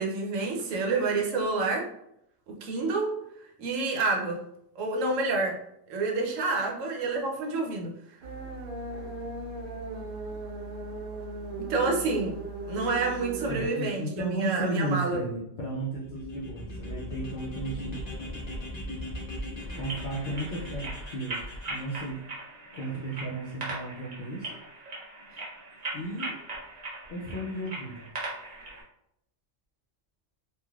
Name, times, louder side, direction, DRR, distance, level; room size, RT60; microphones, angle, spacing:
voice 1, 0.0-1.8 2.5-3.1 3.6-4.4 4.8-5.5 5.9-7.9 11.6-12.4 12.7-15.2, right 3 dB, 75° right, 1 dB, 1.0 m, -28 dB
sound 1, 8.2-13.7, right 3 dB, 60° right, 0.6 m, -37 dB
voice 2, 13.5-18.1 19.7-22.3 22.7-24.5 25.9-26.4 27.1-28.1, right 2 dB, 70° left, -4 dB, 0.4 m, -34 dB
sound 2, 16.0-22.1, equal, 35° left, 1.0 m, -38 dB
sound 3, 19.7-28.8, right 2 dB, 40° right, 0.9 m, -40 dB
3.2 x 2.5 x 2.3 m, 0.79 s
omnidirectional pair, 1.4 m